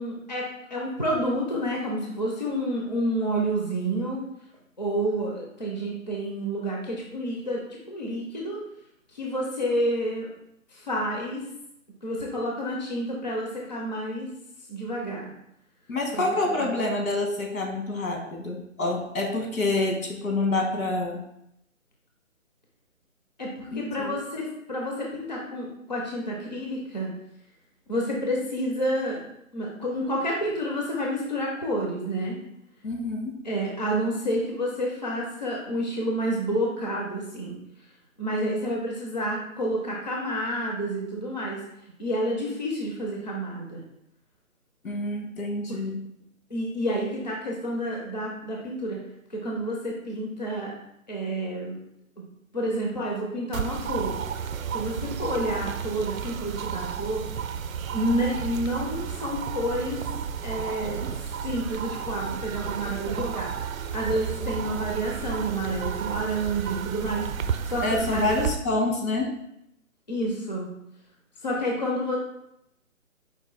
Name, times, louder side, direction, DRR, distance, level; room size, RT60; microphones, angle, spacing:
voice 1, 0.0-4.2 4.8-8.6 9.1-10.3 10.7-11.4 12.0-14.3 14.7-15.2 16.1-16.3 16.6-16.7 23.4-27.1 27.9-29.2 29.5-32.4 33.4-37.6 38.2-41.6 42.0-43.8 45.7-45.8 46.5-49.0 49.3-50.7 51.1-51.8 52.5-54.2 54.7-57.2 57.9-60.0 60.4-61.1 61.4-63.5 63.9-67.8 68.1-68.2 70.1-70.7 71.4-72.2, equal, 35° left, -2 dB, 0.5 m, -29 dB
voice 2, 15.9-21.2 23.7-24.1 32.8-33.3 44.8-46.1 67.8-69.3, left 2 dB, 85° left, 1 dB, 1.5 m, -27 dB
sound 1, 53.5-68.6, right 7 dB, 80° right, 0.5 m, -32 dB
4.7 x 2.5 x 3.9 m, 0.79 s
hypercardioid pair, 175°, 41 cm